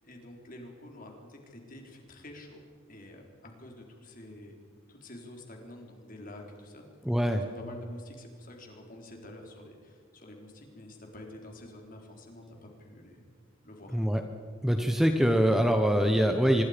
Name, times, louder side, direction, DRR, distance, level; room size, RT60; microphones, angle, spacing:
voice 1, 0.0-2.6 2.9-4.5 4.9-6.8 7.2-13.2 13.6-14.0, left 1 dB, 40° left, 2 dB, 4.1 m, -48 dB
voice 2, 7.0-7.4 13.9-14.2 14.6-16.6, equal, ahead, 5 dB, 1.0 m, -24 dB
25.5 x 22.5 x 5.2 m, 2.1 s
head